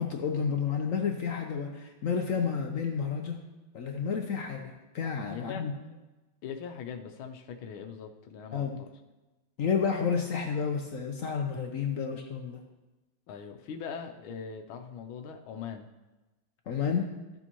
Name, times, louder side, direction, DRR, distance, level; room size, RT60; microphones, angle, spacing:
voice 1, 0.0-3.4 3.7-5.7 8.5-8.8 9.6-12.6 16.7-17.1, left 6 dB, 60° left, 3 dB, 0.8 m, -30 dB
voice 2, 5.3-6.0 6.4-8.9 13.3-15.9, left 6 dB, 90° left, 4 dB, 1.5 m, -41 dB
14.5 x 7.0 x 3.0 m, 1.1 s
omnidirectional pair, 2.2 m